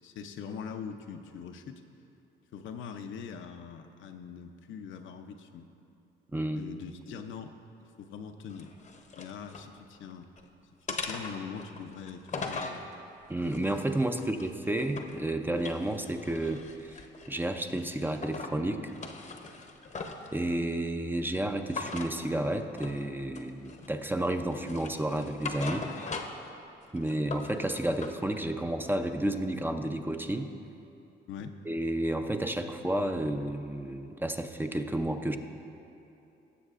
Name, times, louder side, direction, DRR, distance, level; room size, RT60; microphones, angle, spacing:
voice 1, 0.0-1.8 2.5-5.7 6.5-7.6 8.0-8.7 9.1-10.3 10.9-12.9 31.3-31.6, left 6 dB, 75° left, 6 dB, 0.6 m, -42 dB
voice 2, 6.3-6.6 13.3-17.0 17.3-18.9 20.3-25.9 26.9-30.5 31.7-35.4, right 1 dB, 10° right, 6 dB, 0.5 m, -31 dB
sound 1, 8.5-9.7 10.1-10.5 10.9-12.8 13.4-15.2 15.5-17.4 17.8-18.6 18.9-20.3 21.7-22.1 22.8-23.0 23.3-24.1 24.5-26.5 26.8-28.2, left 4 dB, 40° left, 0.8 m, -40 dB
17.0 x 7.2 x 2.5 m, 2.8 s
cardioid pair, 90°, 20 cm